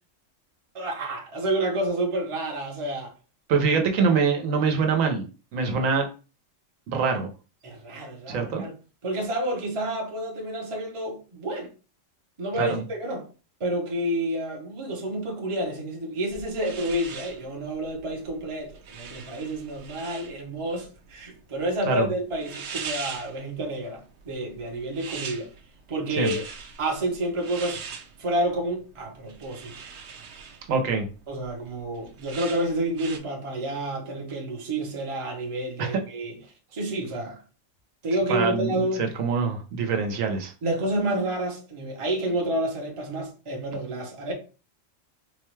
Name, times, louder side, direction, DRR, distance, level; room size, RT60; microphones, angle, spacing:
voice 1, 0.7-3.1 3.7-3.8 7.6-8.7 9.0-11.7 12.4-13.3 13.6-25.5 25.9-26.4 26.8-27.8 28.2-29.7 31.3-36.4 36.7-37.4 38.0-39.1 40.6-44.3, right 1 dB, 30° right, 0.7 m, -29 dB
voice 2, 3.5-5.3 5.5-6.1 6.9-7.3 8.3-8.6 12.6-12.8 21.9-22.1 26.1-26.3 30.7-31.1 35.8-36.0 38.3-38.8 39.2-40.5, right 5 dB, 85° right, 1.2 m, -24 dB
sound 1, 16.3-33.2, right 6 dB, 60° right, 0.9 m, -42 dB
4.2 x 2.2 x 3.1 m
omnidirectional pair, 1.3 m